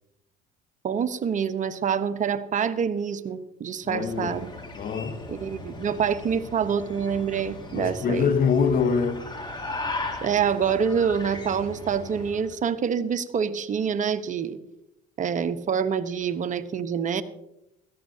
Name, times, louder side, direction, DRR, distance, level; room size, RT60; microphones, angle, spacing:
voice 1, 0.8-4.5 5.3-8.3 10.2-14.6 15.2-17.2, right 7 dB, 40° right, 1.0 m, -26 dB
voice 2, 3.8-4.4 4.7-5.3 7.7-9.2, left 6 dB, 45° left, 1.1 m, -24 dB
sound 1, 3.9-12.5, left 2 dB, 25° left, 3.2 m, -38 dB
17.0 x 14.0 x 2.8 m
supercardioid pair, 80°, 19 cm